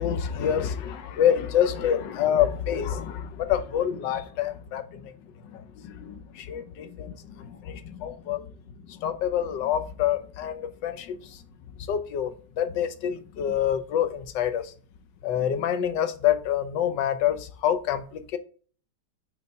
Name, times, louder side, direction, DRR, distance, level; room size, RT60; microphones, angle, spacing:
voice 1, 0.0-5.1 5.5-8.5 8.9-11.4 11.9-14.7 15.2-18.4, left 9 dB, 85° left, 1.4 m, -27 dB
5.8 x 3.8 x 4.5 m
omnidirectional pair, 1.9 m